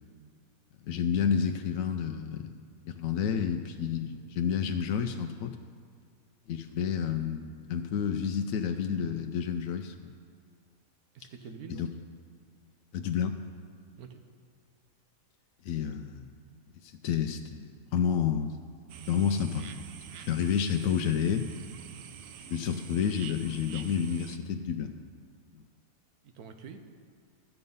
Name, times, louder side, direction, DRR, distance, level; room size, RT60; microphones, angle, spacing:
voice 1, 0.9-2.6 2.9-5.6 6.5-10.1 11.7-11.9 12.9-13.4 15.6-16.3 16.8-18.6 19.1-19.8 20.1-21.5 22.4-24.9 25.5-25.6, left 7 dB, 70° left, 6 dB, 0.9 m, -30 dB
voice 2, 11.1-11.9 14.0-14.2 26.2-26.8, right 6 dB, 85° right, 6 dB, 1.3 m, -45 dB
sound 1, 18.9-24.4, right 9 dB, 70° right, 0.9 m, -46 dB
13.0 x 8.1 x 5.4 m, 2.1 s
omnidirectional pair, 1.5 m